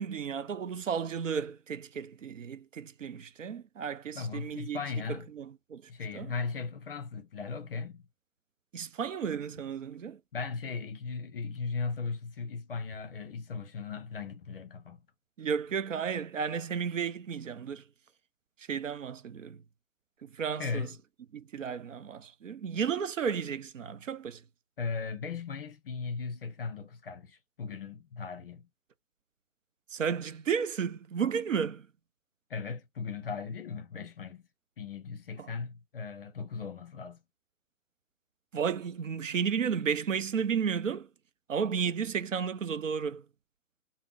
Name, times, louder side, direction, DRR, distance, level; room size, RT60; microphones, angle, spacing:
voice 1, 0.0-4.8 5.1-5.8 6.1-6.3 8.7-10.2 15.4-17.8 18.7-19.6 20.2-20.9 21.3-24.4 29.9-31.9 35.4-35.5 38.5-41.1 41.5-43.2, right 7 dB, 65° right, 0.5 m, -33 dB
voice 2, 4.1-5.3 5.9-8.0 10.3-15.0 20.6-21.0 24.8-28.7 32.5-34.4 34.8-37.2, left 5 dB, 45° left, 0.7 m, -37 dB
3.5 x 2.0 x 2.5 m
figure-of-eight pair, 135°, 41 cm